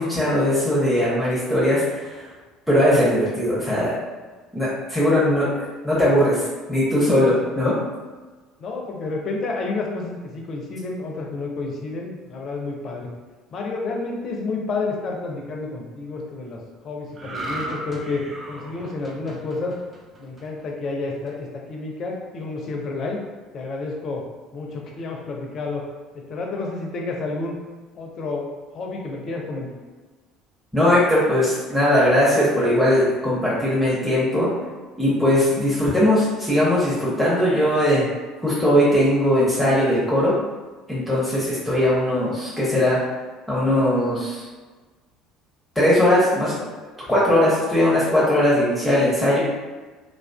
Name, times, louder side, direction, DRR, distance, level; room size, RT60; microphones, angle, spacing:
voice 1, 0.0-2.3 2.7-4.0 4.5-7.8 30.7-34.5 34.9-38.1 38.4-40.3 40.9-43.0 43.5-44.5 45.8-46.6 47.1-49.4, left 1 dB, 5° left, -8 dB, 0.8 m, -19 dB
voice 2, 8.6-13.1 13.5-19.8 20.2-23.2 23.5-24.3 24.5-25.9 26.1-27.6 27.9-29.7, left 3 dB, 45° left, 0 dB, 0.5 m, -30 dB
sound 1, 17.1-20.6 21.0-21.3, right 1 dB, 25° right, 0.5 m, -35 dB
2.4 x 2.3 x 2.2 m, 1.3 s
figure-of-eight pair, 60°, 0 cm